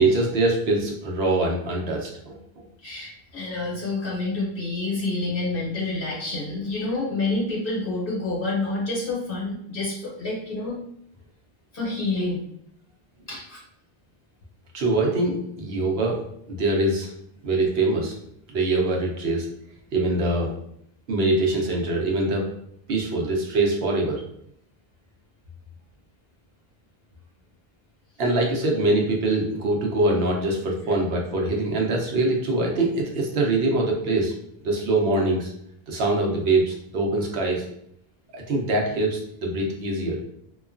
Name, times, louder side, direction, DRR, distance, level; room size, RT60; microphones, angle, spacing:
voice 1, 0.0-2.6 14.7-17.1 17.4-18.1 18.5-19.5 19.9-20.5 21.1-22.5 22.9-24.2 28.2-34.3 34.6-35.5 35.9-37.6 38.3-40.2, right 2 dB, 75° right, -1 dB, 0.9 m, -23 dB
voice 2, 2.8-10.7 11.7-12.4 13.3-13.6, left 2 dB, 60° left, -5 dB, 1.5 m, -28 dB
3.0 x 2.2 x 2.4 m, 0.70 s
omnidirectional pair, 1.0 m